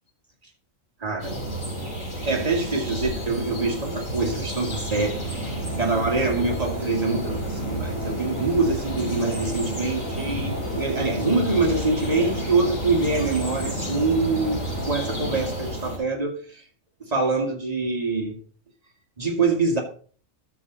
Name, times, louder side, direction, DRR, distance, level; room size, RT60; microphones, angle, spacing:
voice 1, 1.0-1.4 2.3-16.6 17.0-18.4 19.2-19.8, right 3 dB, 30° right, 1 dB, 2.1 m, -25 dB
sound 1, 1.2-16.0, right 1 dB, 70° left, 5.0 m, -31 dB
sound 2, 4.4-16.0, equal, 15° left, 1.3 m, -35 dB
12.5 x 6.7 x 4.0 m, 0.43 s
omnidirectional pair, 1.3 m